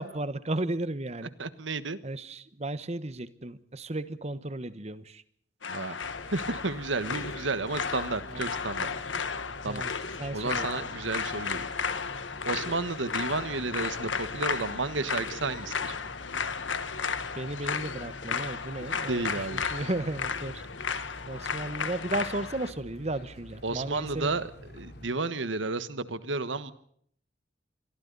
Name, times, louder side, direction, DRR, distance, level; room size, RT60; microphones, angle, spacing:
voice 1, 0.0-1.3 2.0-5.2 8.3-8.4 9.7-9.9 10.2-10.9 17.4-20.6 21.3-24.3, right 2 dB, 35° right, 14 dB, 1.2 m, -34 dB
voice 2, 1.4-2.0 5.7-6.0 6.3-8.9 9.6-9.8 10.3-11.7 12.4-16.0 19.1-19.6 23.6-26.7, right 3 dB, 85° right, 13 dB, 1.4 m, -32 dB
sound 1, 5.6-22.7, left 5 dB, 85° left, 1.6 m, -34 dB
sound 2, 6.0-25.1, left 1 dB, 60° left, 3.6 m, -47 dB
27.5 x 23.0 x 4.1 m, 0.63 s
head